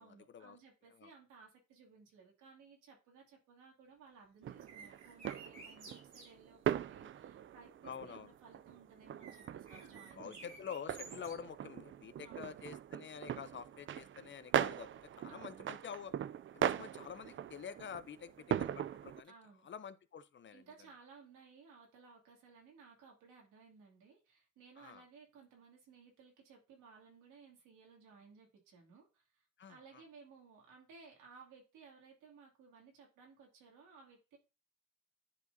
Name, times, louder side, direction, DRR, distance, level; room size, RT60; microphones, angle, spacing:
voice 1, 0.0-10.6 12.2-12.6 15.3-15.6 19.2-19.7 20.5-34.4, right 5 dB, 90° right, 2.5 m, -60 dB
sound 1, 4.4-19.2, right 10 dB, 40° right, 0.4 m, -40 dB
sound 2, 4.6-6.3 9.2-11.3, right 3 dB, 75° right, 3.3 m, -53 dB
voice 2, 7.8-8.3 10.2-16.1 16.5-18.3 18.6-19.3 19.6-20.6 24.8-25.0 29.6-30.0, left 7 dB, 40° left, 0.6 m, -48 dB
10.5 x 4.6 x 2.7 m
cardioid pair, 90°, 30 cm